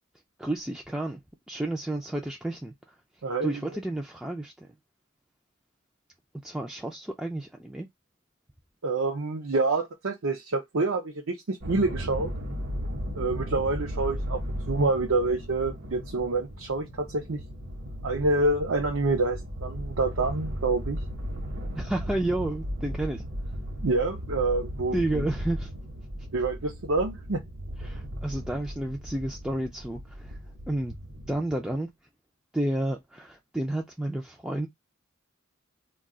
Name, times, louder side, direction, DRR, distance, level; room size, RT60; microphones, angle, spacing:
voice 1, 0.4-1.2 1.5-3.0 3.4-4.7 6.4-7.9 21.7-23.2 24.9-25.7 27.8-30.4 30.7-31.0 31.3-31.9 32.5-34.7, right 1 dB, 5° right, 0.3 m, -31 dB
voice 2, 3.2-3.6 8.8-12.3 13.1-14.4 14.7-17.4 18.0-21.0 23.8-25.2 26.3-27.4, right 3 dB, 80° right, 0.7 m, -27 dB
sound 1, 11.6-31.4, equal, 60° right, 0.9 m, -36 dB
2.3 x 2.3 x 3.7 m
head